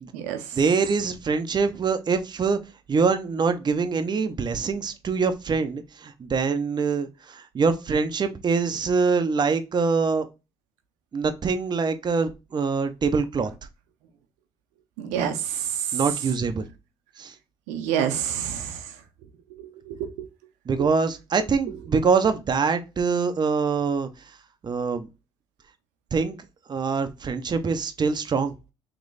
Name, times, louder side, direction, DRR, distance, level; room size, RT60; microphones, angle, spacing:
voice 1, 0.5-2.6 2.9-10.2 11.1-13.5 15.9-16.7 17.2-17.3 20.7-24.1 24.6-25.1 26.1-26.4 26.7-28.5, right 5 dB, 35° right, 0.6 m, -24 dB
voice 2, 15.0-15.7 17.7-18.8 19.6-20.1, right 9 dB, 85° right, 0.7 m, -28 dB
3.1 x 3.0 x 3.8 m
supercardioid pair, 60°, 12 cm